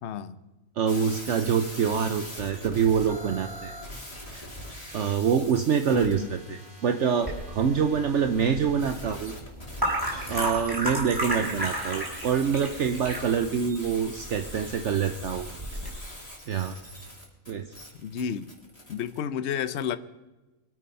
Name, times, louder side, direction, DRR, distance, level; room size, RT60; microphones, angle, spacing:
voice 1, 0.0-0.4 5.9-6.3 11.5-11.6 18.0-18.5 18.9-20.0, left 8 dB, 60° left, 13 dB, 1.0 m, -31 dB
voice 2, 0.8-3.8 4.3-4.4 4.9-9.3 10.3-15.5 16.5-16.7 17.5-17.7, right 7 dB, 60° right, 7 dB, 1.1 m, -26 dB
sound 1, 0.9-19.2, equal, 25° left, 4.2 m, -43 dB
sound 2, 7.2-15.9, right 1 dB, 15° right, 4.8 m, -33 dB
25.0 x 8.6 x 5.5 m, 1.1 s
omnidirectional pair, 1.4 m